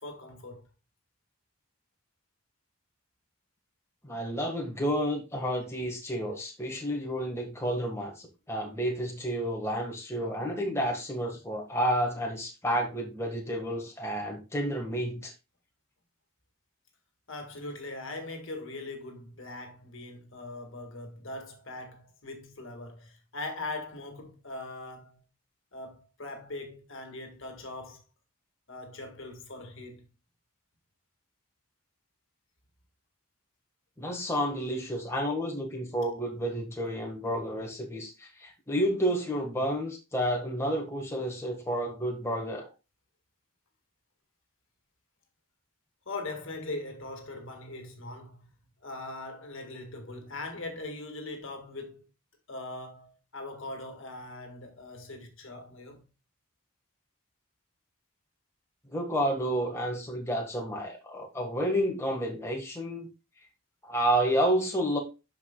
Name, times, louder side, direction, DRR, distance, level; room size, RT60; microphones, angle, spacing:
voice 1, 0.0-0.7 17.3-25.2 25.7-28.0 28.7-30.1 46.0-48.5 48.8-52.0 52.5-56.0, left 2 dB, 65° left, 1.7 m, -41 dB
voice 2, 4.0-15.3 34.0-42.7 58.9-63.1 63.8-65.0, equal, 10° left, 1.4 m, -30 dB
12.0 x 4.9 x 2.2 m
head